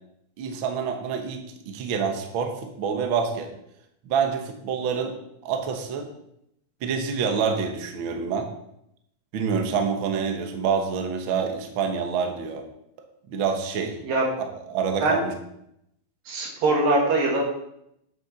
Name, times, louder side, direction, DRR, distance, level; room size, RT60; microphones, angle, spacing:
voice 1, 0.4-3.5 4.0-5.2 5.4-6.1 6.8-8.5 9.3-12.6 13.3-14.0 14.4-15.3, right 6 dB, 80° right, 4 dB, 1.1 m, -27 dB
voice 2, 16.3-17.4, right 2 dB, 65° right, -1 dB, 3.9 m, -22 dB
9.8 x 7.0 x 5.8 m, 0.78 s
omnidirectional pair, 4.3 m